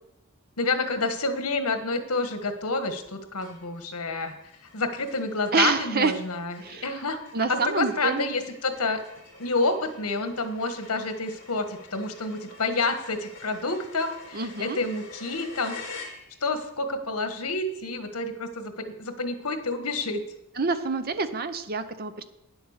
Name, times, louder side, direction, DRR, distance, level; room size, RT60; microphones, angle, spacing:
voice 1, 0.6-4.3 4.7-7.2 7.5-9.0 9.4-15.7 16.4-20.2, left 3 dB, 85° left, 8 dB, 1.5 m, -28 dB
sound 1, 2.2-2.7 3.0-3.1 3.4-16.7, left 3 dB, 55° left, 3.0 m, -47 dB
voice 2, 5.5-6.1 6.6-6.9 7.3-8.3 14.3-14.8 20.6-22.2, right 4 dB, 45° right, 10 dB, 0.8 m, -27 dB
10.0 x 8.0 x 6.6 m, 0.83 s
head